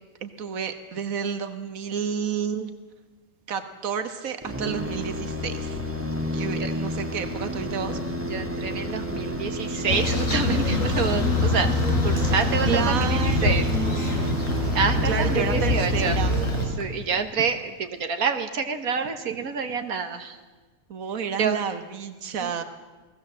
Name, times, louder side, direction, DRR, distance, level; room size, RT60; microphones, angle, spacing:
voice 1, 0.2-2.7 3.5-5.8 6.3-8.0 12.7-14.5 15.0-16.4 20.9-22.6, right 7 dB, 70° right, 8 dB, 1.8 m, -30 dB
sound 1, 4.4-17.3, equal, 10° right, 2.2 m, -31 dB
voice 2, 8.3-11.7 12.0-13.6 14.0-14.2 14.7-16.2 16.8-20.4 21.4-21.6 22.4-22.6, right 5 dB, 85° right, 7 dB, 2.0 m, -28 dB
sound 2, 9.9-16.7, left 2 dB, 65° left, 5.0 m, -24 dB
28.5 x 19.5 x 7.6 m, 1.3 s
omnidirectional pair, 1.5 m